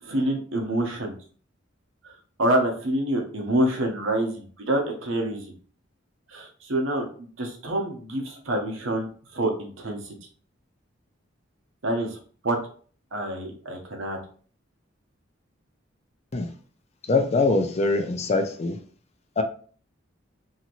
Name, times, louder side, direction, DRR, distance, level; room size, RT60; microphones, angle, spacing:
voice 1, 0.0-1.1 2.0-5.5 6.3-10.1 11.8-12.2 12.4-12.6 13.1-14.2, right 1 dB, 75° right, 2 dB, 0.8 m, -27 dB
voice 2, 17.1-18.8 19.4-19.5, left 3 dB, 35° left, 6 dB, 0.4 m, -23 dB
2.9 x 2.8 x 2.5 m, 0.44 s
head